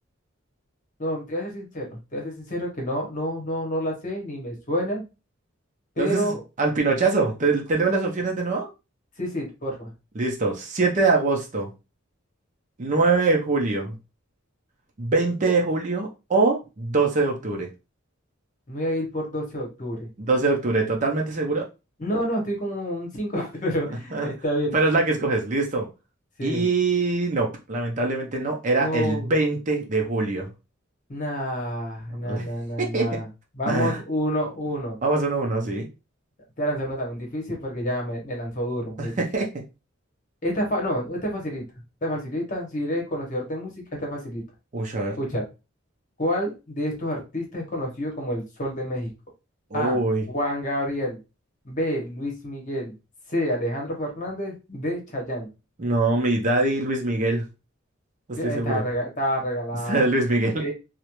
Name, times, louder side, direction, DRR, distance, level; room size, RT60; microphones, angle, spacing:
voice 1, 1.0-5.0 6.0-6.4 9.2-9.9 18.7-20.1 22.0-24.8 26.4-26.7 28.8-29.3 31.1-33.3 33.5-35.0 36.6-39.2 40.4-41.6 42.0-44.4 45.2-45.5 46.2-49.1 49.7-50.0 50.3-51.2 51.6-52.9 53.3-55.5 58.4-60.1 60.6-60.7, equal, 40° left, 0 dB, 0.9 m, -28 dB
voice 2, 6.0-8.7 10.2-11.7 12.8-13.9 15.0-17.7 20.2-21.7 24.1-24.3 24.7-25.9 26.4-30.5 32.2-32.5 32.8-33.1 33.7-34.0 35.0-35.9 39.0-39.5 44.7-45.2 49.7-50.3 55.8-57.4 58.3-58.8 59.9-60.6, right 3 dB, 35° right, 1 dB, 0.5 m, -23 dB
2.3 x 2.0 x 2.9 m, 0.28 s
head